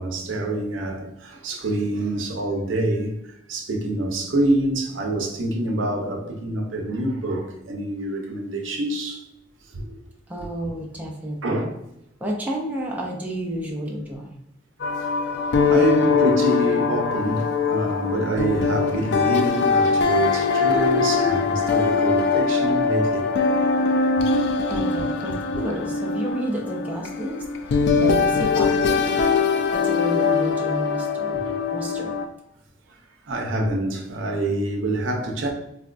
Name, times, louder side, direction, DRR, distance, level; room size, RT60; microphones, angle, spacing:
voice 1, 0.0-9.2 9.7-10.0 10.4-10.5 11.4-11.8 15.0-15.1 15.7-23.5 24.2-24.3 30.9-31.5 32.9-33.0 33.3-35.5, right 2 dB, 80° right, 0.7 m, -26 dB
voice 2, 10.3-11.7 12.2-14.4 15.5-15.7 23.9-24.0 24.7-27.4 28.0-29.1 29.7-31.4 31.7-32.1, right 1 dB, 10° right, 0.5 m, -31 dB
sound 1, 14.8-32.2, left 5 dB, 60° left, 0.3 m, -22 dB
4.1 x 2.2 x 2.4 m
head